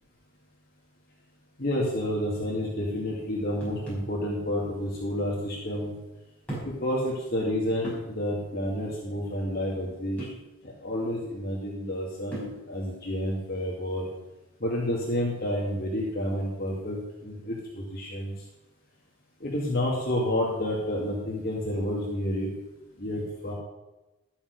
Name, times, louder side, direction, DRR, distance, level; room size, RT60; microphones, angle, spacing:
voice 1, 1.6-5.9 6.6-10.3 10.8-14.1 14.6-18.3 19.4-22.5 23.0-23.5, left 1 dB, 45° left, -4 dB, 2.3 m, -30 dB
sound 1, 3.6-4.2 5.3-5.4 6.4-6.9 7.3-7.4 7.8-8.1 10.2-10.5 12.3-12.6, right 1 dB, 5° left, 5.4 m, -38 dB
13.0 x 7.2 x 6.6 m, 1.0 s
head